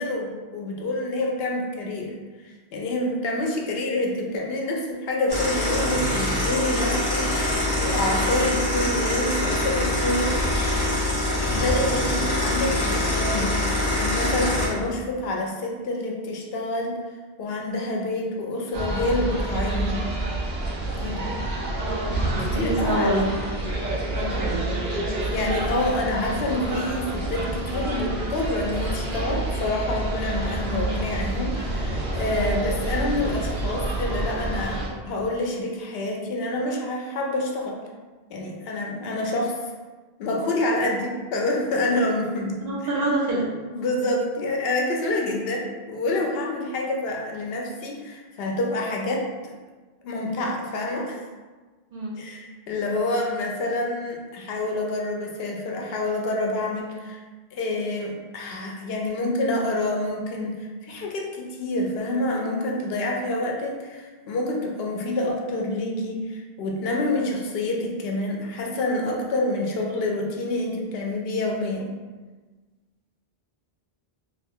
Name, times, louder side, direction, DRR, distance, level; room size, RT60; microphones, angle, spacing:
voice 1, 0.0-2.1 2.4-10.4 11.5-13.6 13.9-17.0 17.4-20.0 20.9-21.3 22.4-23.3 24.2-24.5 25.3-37.8 38.3-39.6 40.2-43.0 43.7-49.3 50.0-51.2 52.2-57.2 57.5-71.9, left 2 dB, 70° left, 0 dB, 0.8 m, -27 dB
sound 1, 5.3-14.7, left 1 dB, 25° left, 0.7 m, -24 dB
sound 2, 18.7-34.9, right 2 dB, 60° right, 0.7 m, -28 dB
voice 2, 21.8-23.3 24.3-24.8 42.6-43.5 51.9-52.2, right 1 dB, 75° right, -4 dB, 1.1 m, -27 dB
2.5 x 2.4 x 3.5 m, 1.3 s
omnidirectional pair, 1.0 m